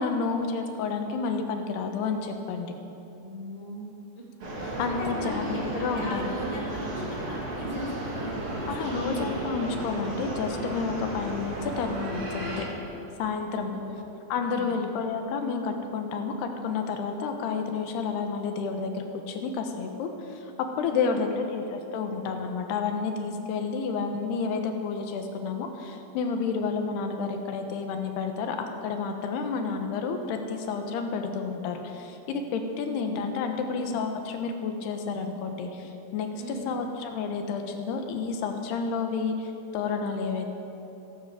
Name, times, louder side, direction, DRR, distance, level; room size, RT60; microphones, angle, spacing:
voice 1, 0.0-2.7 4.8-6.3 8.7-12.6 13.2-13.7 14.3-20.4 20.8-40.5, left 5 dB, 75° left, 5 dB, 3.1 m, -30 dB
voice 2, 3.2-3.8 4.6-8.3 8.6-9.2 13.7-14.9 20.9-21.5 26.4-26.6 33.0-33.2 33.8-33.9 36.4-36.8, equal, 20° right, -4 dB, 0.9 m, -40 dB
sound 1, 4.4-12.6, right 1 dB, 40° right, 2.6 m, -33 dB
16.0 x 10.5 x 7.6 m, 2.9 s
omnidirectional pair, 4.8 m